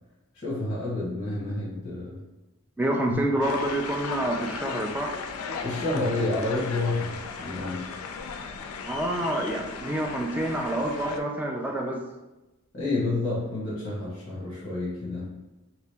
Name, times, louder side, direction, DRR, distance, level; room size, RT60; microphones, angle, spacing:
voice 1, 0.3-2.2 3.1-3.2 5.6-7.9 12.7-15.3, left 2 dB, 35° left, -7 dB, 0.9 m, -29 dB
voice 2, 2.8-5.1 8.9-12.0, right 1 dB, 5° right, 0 dB, 0.3 m, -27 dB
sound 1, 3.4-11.2, left 5 dB, 75° left, 0.3 m, -36 dB
2.9 x 2.9 x 3.3 m, 1.0 s
head